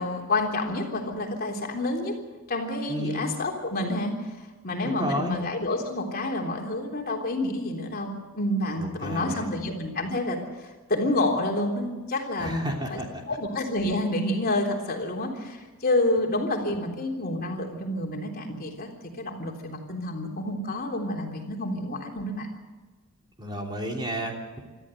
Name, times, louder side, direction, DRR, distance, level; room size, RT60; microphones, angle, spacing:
voice 1, 0.0-2.1 2.5-4.1 4.6-10.4 10.9-13.0 13.3-18.9 19.2-22.5, left 1 dB, 45° left, 1 dB, 3.5 m, -28 dB
voice 2, 2.9-3.3 4.8-5.3 8.8-9.5 12.4-13.2 23.4-24.6, equal, 20° right, 1 dB, 3.1 m, -32 dB
25.0 x 14.0 x 7.8 m, 1.3 s
head